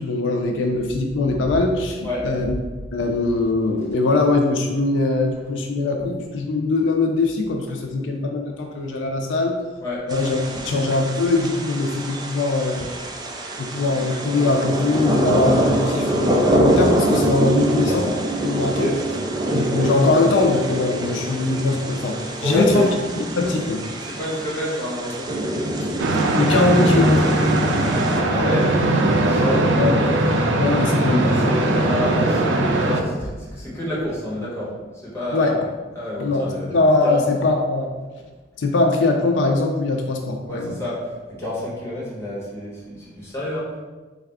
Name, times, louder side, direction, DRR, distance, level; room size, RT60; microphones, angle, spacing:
voice 1, 0.0-2.5 2.9-9.6 10.1-10.4 10.7-12.8 13.6-18.2 18.4-18.9 19.5-22.9 23.4-23.8 26.4-27.2 29.8-31.2 35.3-35.5 36.2-37.9 38.6-40.8, left 3 dB, 85° left, 2 dB, 0.4 m, -21 dB
voice 2, 2.0-2.3 9.8-10.0 18.7-19.0 22.3-22.9 24.0-25.6 28.1-28.7 29.2-29.7 30.7-34.7 35.1-35.5 35.9-37.2 40.5-41.0 41.4-43.8, left 1 dB, 15° left, -7 dB, 1.2 m, -28 dB
sound 1, 10.1-28.2, right 1 dB, 25° right, 0.4 m, -25 dB
sound 2, 26.0-33.0, right 1 dB, 85° right, 0.4 m, -19 dB
4.1 x 2.3 x 3.5 m, 1.3 s
head